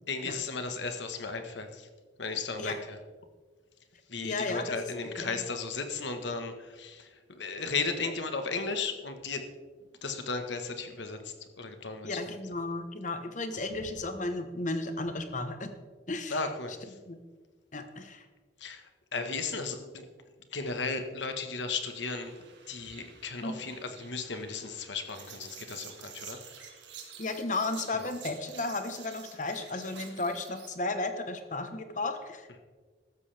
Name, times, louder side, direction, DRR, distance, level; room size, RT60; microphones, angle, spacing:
voice 1, 0.1-1.9 2.2-3.0 4.1-9.4 10.0-12.2 16.3-16.7 18.6-20.0 20.5-22.3 22.7-26.4, left 4 dB, 75° left, 7 dB, 1.5 m, -35 dB
voice 2, 4.2-4.8 5.0-5.5 12.0-15.7 16.1-16.5 17.1-17.2 17.7-18.3 23.4-23.6 27.2-32.5, left 2 dB, 40° left, 8 dB, 1.2 m, -34 dB
sound 1, 21.8-30.7, right 7 dB, 75° right, 2.1 m, -50 dB
14.5 x 13.0 x 3.5 m, 1.4 s
head